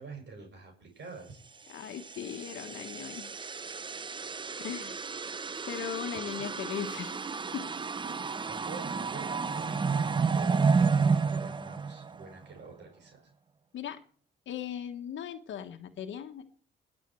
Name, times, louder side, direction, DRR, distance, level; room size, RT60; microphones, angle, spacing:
voice 1, 0.0-1.4 6.1-6.5 8.5-13.3, right 4 dB, 60° right, 2 dB, 6.6 m, -47 dB
voice 2, 1.7-3.3 4.6-5.0 5.7-7.2 7.5-7.7 13.7-14.0 14.5-16.5, left 9 dB, 70° left, 7 dB, 1.3 m, -38 dB
sound 1, 1.8-12.5, right 5 dB, 25° right, 0.6 m, -31 dB
19.5 x 7.6 x 4.6 m, 0.43 s
cardioid pair, 90°, 20 cm